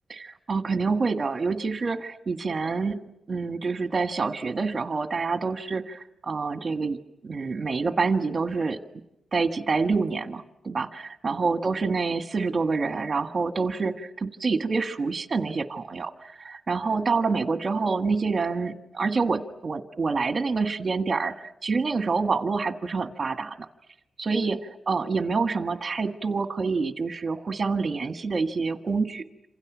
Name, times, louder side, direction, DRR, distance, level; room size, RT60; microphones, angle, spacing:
voice 1, 0.1-3.0 3.3-7.0 7.2-8.8 9.3-23.7 24.2-29.2, right 4 dB, 40° right, 7 dB, 1.6 m, -27 dB
27.5 x 27.0 x 6.2 m, 0.84 s
wide cardioid pair, 125°, 0 cm